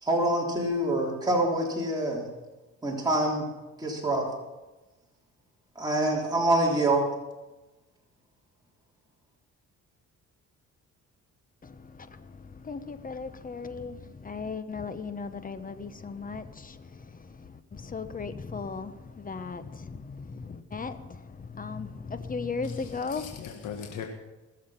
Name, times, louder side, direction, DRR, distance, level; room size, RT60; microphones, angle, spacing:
voice 1, 0.0-2.3 2.8-3.5 3.8-4.2 5.8-7.0, right 1 dB, 15° right, 3.6 m, -25 dB
voice 2, 11.6-23.5, left 4 dB, 30° left, 1.0 m, -37 dB
voice 3, 22.6-24.1, left 8 dB, 80° left, 1.7 m, -40 dB
20.5 x 7.3 x 5.8 m
cardioid pair, 90°, 30 cm